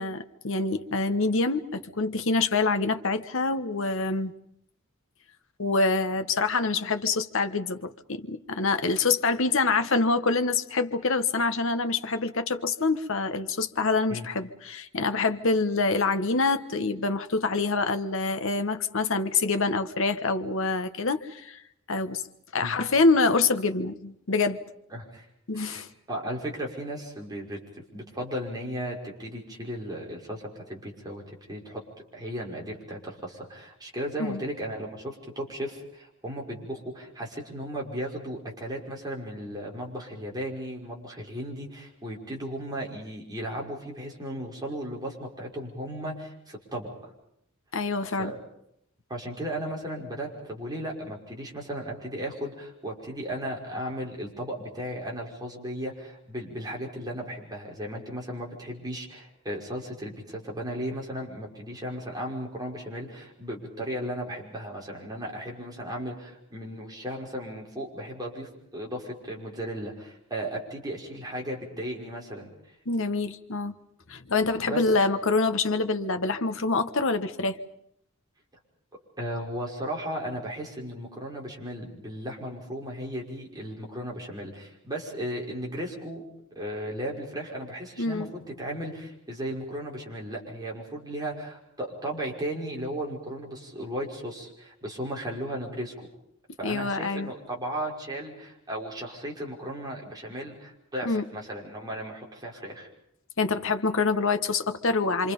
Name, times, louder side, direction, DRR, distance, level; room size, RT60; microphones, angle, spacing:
voice 1, 0.0-4.3 5.6-21.6 21.9-22.2 22.5-24.6 25.5-25.9 34.2-34.4 47.7-48.3 72.9-73.7 74.1-77.6 88.0-88.3 96.6-97.3 101.0-101.2 103.4-105.3, left 3 dB, 65° left, 9 dB, 1.3 m, -26 dB
voice 2, 24.9-25.3 25.5-25.8 26.1-31.8 32.1-46.9 48.2-48.4 49.1-72.5 74.6-74.8 79.2-86.2 86.6-96.1 96.6-102.9, right 1 dB, 20° right, -2 dB, 5.8 m, -35 dB
27.0 x 26.5 x 5.4 m, 0.75 s
head